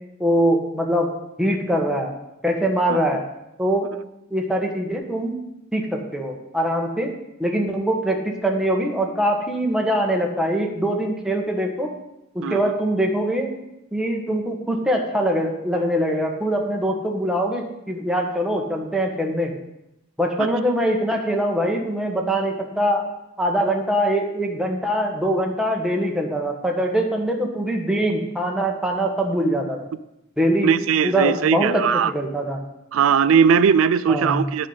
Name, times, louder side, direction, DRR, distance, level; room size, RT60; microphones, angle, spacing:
voice 1, 0.2-1.1 1.4-2.1 2.4-3.2 3.6-3.9 4.3-5.3 5.7-7.1 7.4-11.9 12.3-13.5 13.9-19.5 20.2-23.1 23.4-29.8 30.4-30.8 31.0-32.6 34.1-34.4, equal, 5° right, 0 dB, 1.4 m, -23 dB
voice 2, 12.4-12.7 20.4-20.5 30.6-32.1 32.9-34.7, right 7 dB, 85° right, 15 dB, 0.4 m, -19 dB
9.7 x 5.6 x 8.1 m, 0.87 s
head